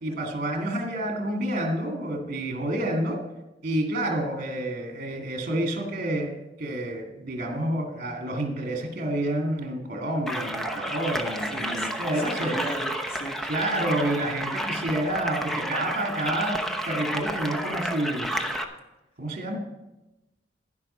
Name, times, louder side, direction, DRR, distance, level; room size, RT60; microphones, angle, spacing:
voice 1, 0.0-3.2 3.6-12.6 13.5-18.5 19.2-19.6, right 1 dB, 45° right, 2 dB, 2.1 m, -29 dB
sound 1, 10.3-18.6, equal, ahead, 0.8 m, -31 dB
voice 2, 11.5-13.4, equal, 30° left, 1 dB, 1.7 m, -37 dB
11.0 x 10.5 x 4.3 m, 1.0 s
head